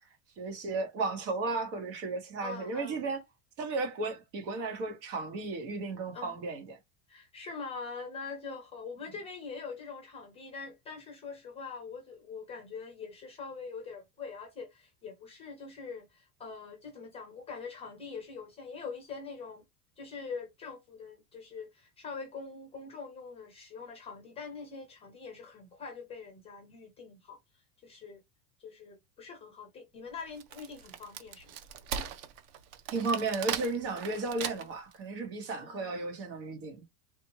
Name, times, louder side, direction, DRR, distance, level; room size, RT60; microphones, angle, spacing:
voice 1, 0.4-3.2 3.6-6.8 32.9-36.8, right 3 dB, 85° right, 1.9 m, -34 dB
voice 2, 2.4-3.0 6.1-6.3 7.1-19.6 20.0-27.4 27.8-28.2 28.6-31.6 35.5-35.9, left 5 dB, 15° left, 0.4 m, -43 dB
Wood, 30.2-34.9, right 8 dB, 50° right, 0.6 m, -39 dB
3.3 x 2.7 x 2.9 m
supercardioid pair, 170°, 48 cm